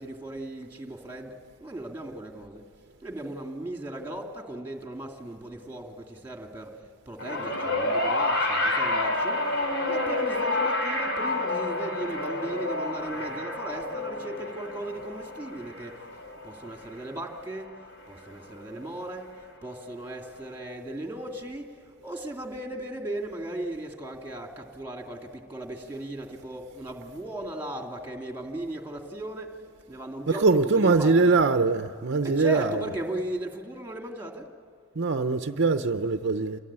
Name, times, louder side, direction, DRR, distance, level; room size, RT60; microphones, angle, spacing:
voice 1, 0.0-1.3 1.6-2.6 3.0-6.7 7.1-9.4 9.9-15.9 16.4-17.7 18.1-19.3 19.6-21.6 22.0-29.5 29.9-31.3 32.2-34.4, right 1 dB, 10° right, 2.5 m, -37 dB
sound 1, 7.2-17.6 18.7-18.8, left 2 dB, 65° left, 3.6 m, -29 dB
voice 2, 30.3-32.7 35.0-36.6, right 3 dB, 55° right, 0.8 m, -22 dB
28.0 x 22.5 x 8.9 m
head